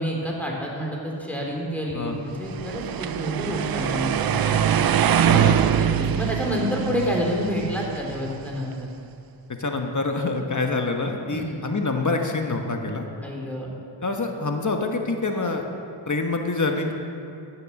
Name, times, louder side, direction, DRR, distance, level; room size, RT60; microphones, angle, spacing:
voice 1, 0.0-4.6 5.3-5.4 5.7-8.9 11.3-11.6 13.2-13.7, equal, 5° left, -2 dB, 3.4 m, -28 dB
sound 1, 2.5-8.6, right 9 dB, 50° right, 0.5 m, -23 dB
voice 2, 5.2-5.8 9.6-13.0 14.0-15.6 16.1-16.9, left 3 dB, 40° left, 3 dB, 1.4 m, -26 dB
15.0 x 6.6 x 6.6 m, 2.5 s
cardioid pair, 45°, 45 cm